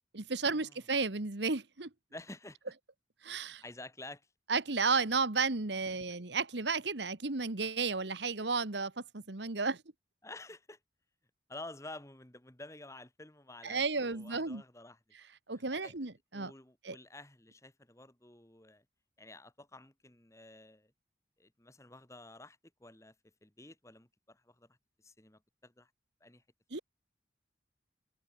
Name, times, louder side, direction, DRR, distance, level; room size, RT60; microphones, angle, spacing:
voice 1, 0.1-1.9 3.2-3.6 4.5-9.8 13.6-14.6 15.5-16.5 16.8-16.9 26.7-26.8, right 4 dB, 70° right, 1.6 m, -33 dB
voice 2, 2.1-2.6 3.5-4.2 10.2-10.8 11.5-15.0 15.5-15.9 16.3-18.8 19.2-20.9 21.4-23.1 23.4-24.7 25.0-25.9 26.2-26.4 26.7-26.8, left 2 dB, 15° left, 1.8 m, -51 dB
head